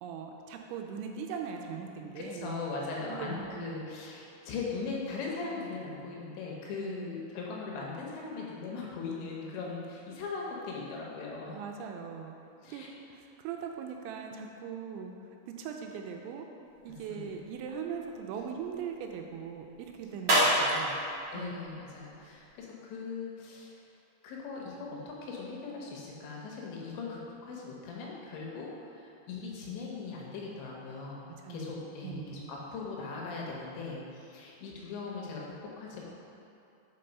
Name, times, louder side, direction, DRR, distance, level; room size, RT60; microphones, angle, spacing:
voice 1, 0.0-2.6 3.1-3.8 6.7-7.1 11.5-12.4 12.6-12.8 13.1-15.1 15.5-16.5 16.8-21.0 21.3-21.5 31.4-31.7 32.0-32.5, right 6 dB, 85° right, 3 dB, 2.8 m, -40 dB
voice 2, 2.2-11.6 12.6-12.9 16.9-17.3 21.3-23.8 24.2-36.1, left 4 dB, 80° left, -3 dB, 3.1 m, -39 dB
sound 1, 16.6-22.6, equal, 50° right, 1.4 m, -33 dB
5.8 x 5.6 x 5.3 m, 2.7 s
omnidirectional pair, 5.3 m